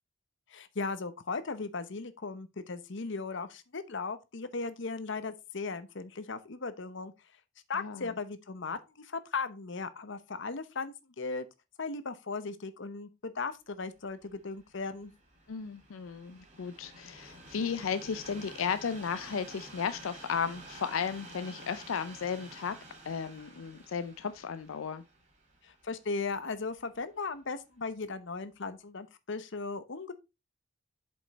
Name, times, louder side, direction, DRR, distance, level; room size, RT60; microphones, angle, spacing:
voice 1, 0.5-7.1 7.7-11.5 11.8-15.1 25.6-30.1, left 4 dB, 65° left, 0.9 m, -37 dB
voice 2, 7.7-8.1 15.5-22.8 23.1-25.0, left 6 dB, 90° left, 0.5 m, -35 dB
Train, 14.0-27.2 27.8-28.0, right 2 dB, 35° right, 2.4 m, -51 dB
7.7 x 5.3 x 4.1 m
head